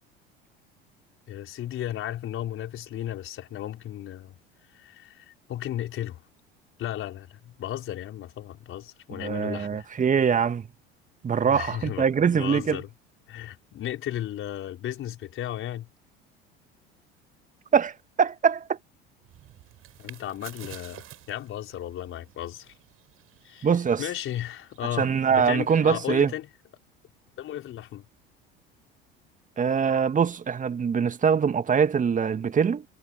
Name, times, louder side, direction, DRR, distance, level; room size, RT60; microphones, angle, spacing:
voice 1, 1.3-4.4 4.7-6.2 6.8-9.9 11.4-12.1 12.3-12.9 13.3-15.9 20.0-22.7 23.4-23.7 24.0-26.5 27.4-28.0, left 12 dB, 45° left, 4.6 m, -34 dB
voice 2, 9.2-10.6 11.2-12.8 17.7-18.8 23.6-24.0 25.0-26.3 29.6-32.9, right 6 dB, 25° right, 2.1 m, -23 dB
sound 1, 19.2-25.0, right 13 dB, 45° right, 7.2 m, -50 dB
figure-of-eight pair, 65°, 30 cm